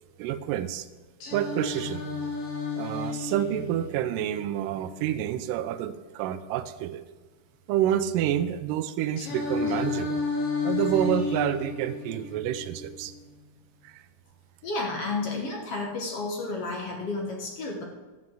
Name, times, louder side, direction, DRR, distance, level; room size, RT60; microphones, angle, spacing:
voice 1, 0.2-0.9 1.3-2.1 2.8-7.0 7.7-10.2 10.6-13.1 13.8-14.0, right 11 dB, 80° right, 11 dB, 2.2 m, -28 dB
Singing, 1.2-5.2 9.2-13.2, left 4 dB, 70° left, 4.6 m, -32 dB
voice 2, 14.6-17.8, left 3 dB, 55° left, 0 dB, 2.0 m, -31 dB
12.0 x 5.8 x 7.6 m, 1.3 s
omnidirectional pair, 3.9 m